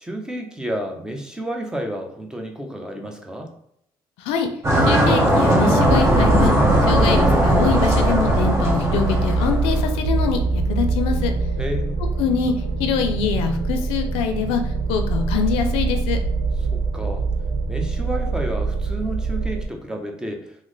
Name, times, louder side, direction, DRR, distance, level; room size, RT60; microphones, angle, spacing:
voice 1, 0.0-3.5 11.6-12.0 16.7-17.3 17.7-20.6, right 1 dB, 5° right, 3 dB, 0.7 m, -30 dB
voice 2, 4.2-4.5 4.9-6.5 6.9-11.3 12.2-12.5 12.8-14.6 14.9-16.2, left 5 dB, 80° left, 6 dB, 0.5 m, -24 dB
sound 1, 4.6-9.9, equal, 30° right, 1.0 m, -19 dB
sound 2, 5.8-19.7, right 3 dB, 80° right, 0.6 m, -23 dB
3.0 x 2.1 x 3.8 m, 0.73 s
supercardioid pair, 80°, 10 cm